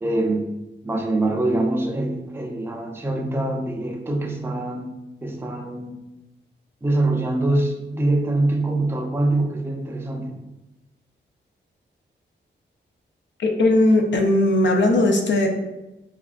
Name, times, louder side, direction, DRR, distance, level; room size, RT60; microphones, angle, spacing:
voice 1, 0.0-0.5 0.8-4.9 5.2-6.0 6.8-10.4, right 2 dB, 10° right, 0 dB, 0.4 m, -24 dB
voice 2, 13.4-15.5, left 1 dB, 70° left, 3 dB, 0.6 m, -18 dB
4.7 x 2.3 x 2.4 m, 0.99 s
wide cardioid pair, 95°, 20 cm